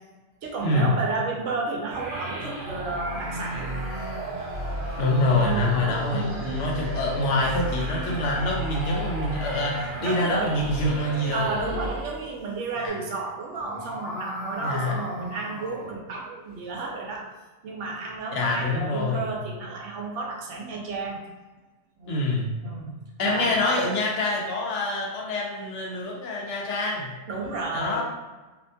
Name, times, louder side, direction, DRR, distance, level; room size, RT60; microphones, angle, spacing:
voice 1, 0.4-3.7 5.3-5.7 6.1-6.4 10.0-10.5 11.3-17.3 17.6-21.2 22.0-22.2 22.6-23.6 27.3-28.0, right 3 dB, 85° right, -1 dB, 0.9 m, -32 dB
sound 1, 1.9-12.5, right 1 dB, 55° right, 0.7 m, -34 dB
sound 2, 3.0-6.9 7.8-12.1 13.5-16.0, equal, 55° left, 0.7 m, -39 dB
voice 2, 5.0-11.5 12.8-12.9 14.6-15.0 18.3-19.3 22.1-22.5 23.2-27.1 27.7-28.0, left 2 dB, 90° left, -2 dB, 1.0 m, -26 dB
2.8 x 2.1 x 2.6 m, 1.2 s
omnidirectional pair, 1.2 m